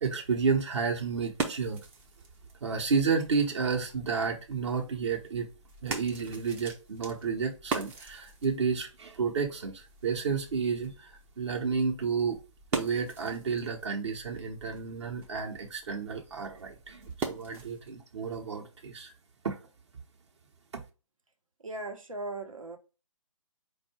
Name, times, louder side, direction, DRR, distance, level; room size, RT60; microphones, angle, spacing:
voice 1, 0.0-1.8 2.6-5.5 5.8-12.4 12.7-19.1 19.4-19.6 20.7-20.8, right 5 dB, 55° right, 1.0 m, -31 dB
sound 1, 0.8-17.9, right 4 dB, 10° right, 0.4 m, -42 dB
voice 2, 21.6-22.8, right 2 dB, 80° right, 1.1 m, -38 dB
4.5 x 2.6 x 4.4 m
figure-of-eight pair, 140°, 17 cm